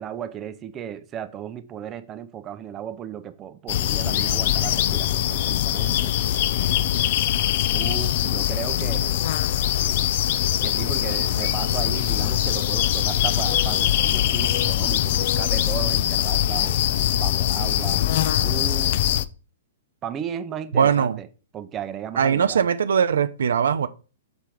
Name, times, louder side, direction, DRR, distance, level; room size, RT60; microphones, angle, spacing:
voice 1, 0.0-6.1 7.7-9.2 10.6-16.8 17.2-18.1 18.4-19.0 20.0-21.3 21.5-22.6, right 9 dB, 25° right, 0.6 m, -35 dB
sound 1, 3.7-19.2, left 12 dB, 50° left, 0.4 m, -22 dB
voice 2, 20.7-21.2 22.2-23.9, right 7 dB, 65° right, 0.4 m, -20 dB
7.1 x 3.3 x 4.5 m
figure-of-eight pair, 115°, 0 cm